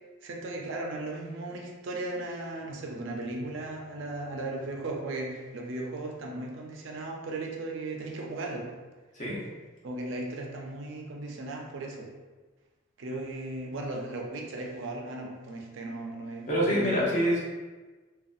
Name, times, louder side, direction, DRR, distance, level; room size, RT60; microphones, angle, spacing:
voice 1, 0.2-8.7 9.8-12.1 13.0-17.1, right 2 dB, 65° right, 0 dB, 0.4 m, -36 dB
voice 2, 16.5-17.4, equal, 35° left, -5 dB, 0.6 m, -26 dB
2.6 x 2.2 x 2.4 m, 1.3 s
head